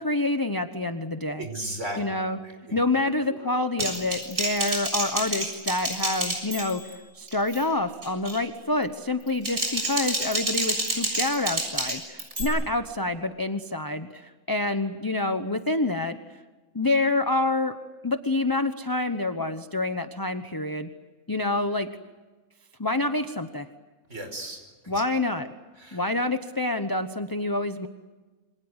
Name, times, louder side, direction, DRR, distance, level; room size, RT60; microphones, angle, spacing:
voice 1, 0.0-1.5 2.0-2.4 2.7-16.2 16.7-17.8 18.0-20.9 21.3-21.9 22.8-23.7 24.9-25.5 25.9-27.9, left 2 dB, 20° left, 8 dB, 0.8 m, -27 dB
voice 2, 1.4-2.8 3.3-3.5 24.1-25.0 25.8-26.0, right 1 dB, 55° right, 5 dB, 5.4 m, -36 dB
Typing, 3.8-6.9 7.3-7.6 8.0-8.4 9.2-12.4, right 1 dB, 80° right, 7.5 m, -29 dB
28.0 x 25.5 x 8.1 m, 1.3 s
omnidirectional pair, 1.5 m